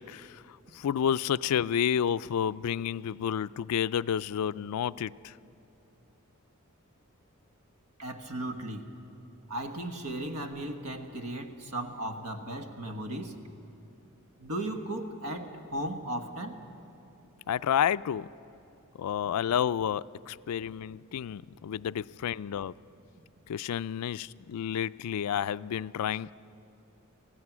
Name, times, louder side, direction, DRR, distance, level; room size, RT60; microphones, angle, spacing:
voice 1, 0.0-5.4 17.5-18.3 19.0-22.7 23.5-26.3, left 9 dB, 85° left, 0.3 m, -30 dB
voice 2, 8.0-8.9 9.5-13.4 14.4-16.6 23.1-23.2, right 1 dB, 85° right, 1.5 m, -36 dB
26.0 x 16.5 x 6.1 m
head